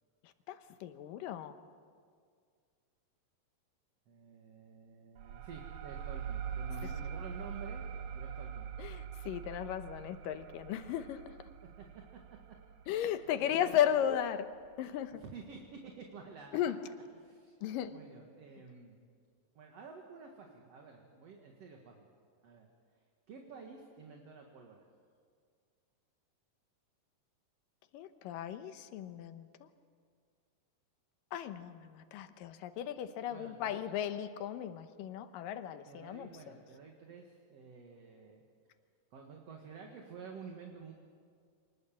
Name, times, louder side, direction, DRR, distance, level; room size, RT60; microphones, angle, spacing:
voice 1, 0.2-1.6 8.8-11.2 12.9-14.5 14.8-15.2 16.5-16.8 17.6-17.9 27.9-29.7 31.3-36.6, left 10 dB, 80° left, 10 dB, 2.6 m, -36 dB
voice 2, 4.1-7.8 8.1-8.7 11.7-12.0 13.0-13.1 13.4-13.8 15.1-16.6 17.1-17.5 17.9-19.1 19.6-22.1 22.4-22.7 23.3-24.9 33.3-33.8 35.9-38.4 39.1-40.9, right 5 dB, 50° right, 2 dB, 2.5 m, -50 dB
sound 1, 5.2-14.4, right 7 dB, 75° right, 2.4 m, -43 dB
25.0 x 20.0 x 7.5 m, 2.1 s
omnidirectional pair, 4.0 m